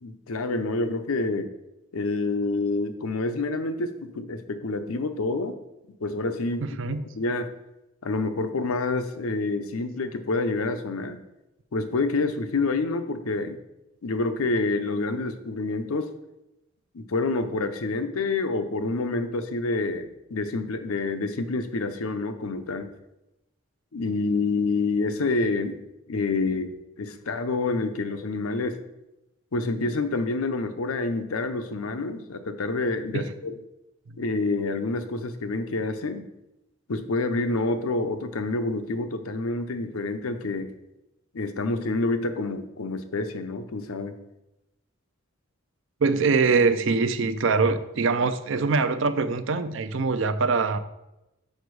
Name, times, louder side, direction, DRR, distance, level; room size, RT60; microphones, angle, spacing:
voice 1, 0.0-1.5 1.9-5.6 6.0-7.5 8.0-11.2 11.7-13.6 14.0-16.1 16.9-22.9 23.9-25.8 26.1-28.8 29.5-33.6 34.2-36.2 36.9-40.7 41.3-44.1, left 3 dB, 85° left, 8 dB, 0.7 m, -28 dB
voice 2, 6.6-7.0 33.1-33.2 46.0-50.8, right 4 dB, 60° right, 12 dB, 0.4 m, -23 dB
6.6 x 5.1 x 4.7 m, 0.92 s
head